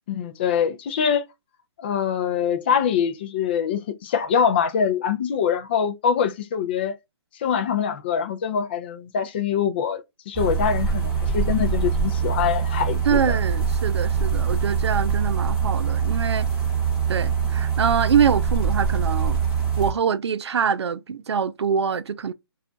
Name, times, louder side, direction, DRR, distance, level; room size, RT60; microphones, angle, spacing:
voice 1, 0.1-1.2 1.8-7.0 7.4-13.4, left 7 dB, 25° left, 0.3 m, -24 dB
sound 1, 10.3-19.9, right 6 dB, 5° right, 0.9 m, -23 dB
voice 2, 13.1-16.5 17.1-19.4 19.8-22.3, right 7 dB, 85° right, 0.4 m, -24 dB
2.4 x 2.1 x 3.8 m
hypercardioid pair, 160°, 14 cm